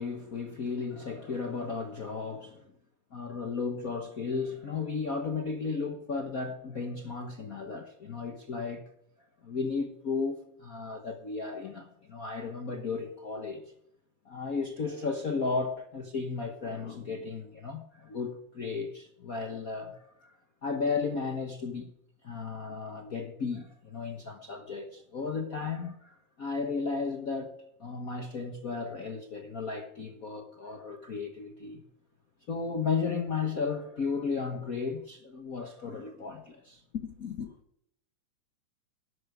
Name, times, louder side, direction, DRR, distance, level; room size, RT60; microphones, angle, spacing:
voice 1, 0.0-2.6 3.1-8.9 9.4-13.6 14.2-20.3 20.6-21.9 22.2-27.5 27.8-31.8 32.5-37.5, left 4 dB, 75° left, 0.8 m, -34 dB
12.0 x 11.5 x 5.1 m
omnidirectional pair, 3.5 m